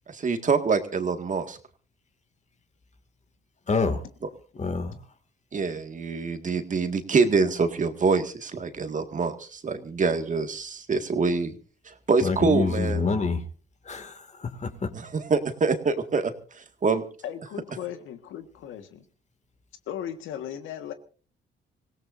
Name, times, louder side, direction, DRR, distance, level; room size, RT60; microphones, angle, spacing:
voice 1, 0.1-1.6 5.5-11.5 12.1-13.0 15.1-16.3 16.8-17.0, right 4 dB, 40° right, 7 dB, 1.9 m, -25 dB
voice 2, 3.7-4.0 4.5-5.0 12.2-13.4 13.9-14.9, left 4 dB, 35° left, 8 dB, 2.3 m, -27 dB
voice 3, 17.2-19.0 19.9-20.9, left 10 dB, 90° left, 8 dB, 1.6 m, -36 dB
26.0 x 17.0 x 2.6 m, 0.37 s
cardioid pair, 90°, 20 cm